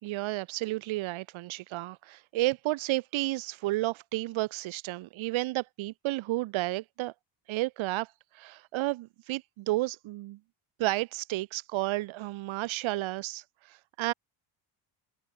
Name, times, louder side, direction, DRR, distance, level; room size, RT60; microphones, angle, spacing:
voice 1, 0.0-7.1 7.5-10.4 10.8-14.1, right 18 dB, 70° right, 4.8 m, -32 dB
open air
cardioid pair, 135°, 49 cm